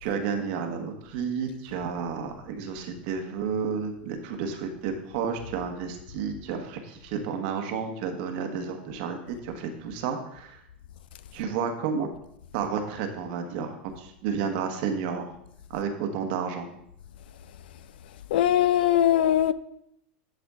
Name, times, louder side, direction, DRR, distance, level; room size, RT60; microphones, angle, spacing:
voice 1, 0.0-10.6 11.3-12.1 12.5-15.3 15.7-16.7, right 6 dB, 60° right, 1.4 m, -31 dB
voice 2, 18.3-19.5, left 11 dB, 70° left, 0.5 m, -21 dB
10.5 x 5.0 x 3.7 m
hypercardioid pair, 90°, 5 cm